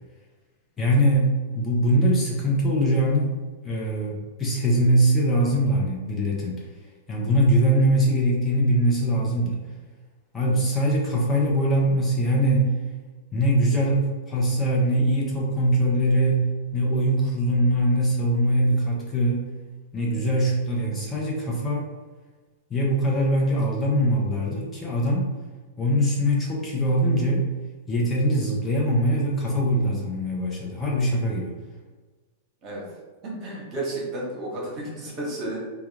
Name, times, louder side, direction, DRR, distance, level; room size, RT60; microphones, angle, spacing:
voice 1, 0.8-3.3 3.6-6.5 7.1-9.6 10.3-12.7 13.3-16.5 16.7-19.5 19.9-21.8 22.7-25.3 25.8-27.4 27.9-31.5, right 1 dB, 20° left, -4 dB, 0.7 m, -22 dB
voice 2, 33.2-35.6, right 2 dB, 35° right, -3 dB, 1.0 m, -32 dB
2.3 x 2.3 x 3.2 m, 1.3 s
hypercardioid pair, 100°, 0 cm